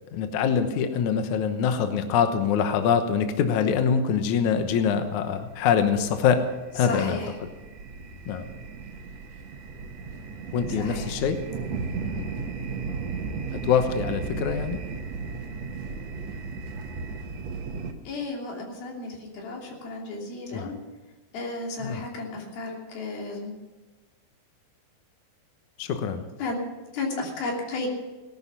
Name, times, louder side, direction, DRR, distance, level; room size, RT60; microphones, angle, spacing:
voice 1, 0.1-6.4 6.7-7.2 8.3-8.5 10.5-11.4 12.0-12.3 13.5-14.8 20.5-20.7 21.8-22.0 25.8-26.3, left 7 dB, 65° left, 7 dB, 2.2 m, -24 dB
sound 1, 5.2-17.9, right 4 dB, 60° right, 2.1 m, -35 dB
voice 2, 6.8-7.4 10.7-11.2 18.0-20.8 21.3-23.6 26.4-26.6 26.9-27.9, left 3 dB, 85° left, -1 dB, 4.9 m, -33 dB
18.0 x 12.0 x 5.7 m, 1.2 s
omnidirectional pair, 4.2 m